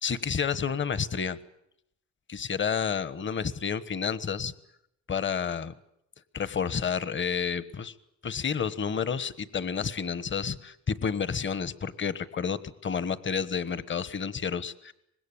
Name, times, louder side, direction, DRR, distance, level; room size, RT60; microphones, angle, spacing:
voice 1, 0.0-1.4 2.3-4.5 5.1-5.7 6.3-7.9 8.2-14.9, left 6 dB, 40° left, 16 dB, 1.3 m, -30 dB
25.0 x 20.5 x 8.7 m, 0.77 s
cardioid pair, 90°, 30 cm